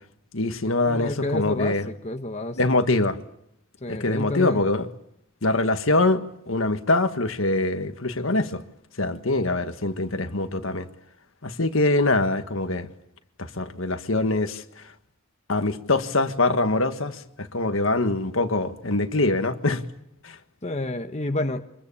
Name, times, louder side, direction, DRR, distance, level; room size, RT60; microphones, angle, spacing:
voice 1, 0.3-1.9 2.6-3.2 3.9-4.9 5.4-8.6 9.0-10.9 11.4-12.9 13.4-14.9 15.5-19.8 20.2-20.4, left 2 dB, 70° left, 1.6 m, -24 dB
voice 2, 0.8-2.6 3.8-4.6 20.6-21.6, left 2 dB, 30° left, 1.2 m, -29 dB
26.0 x 21.5 x 8.7 m
head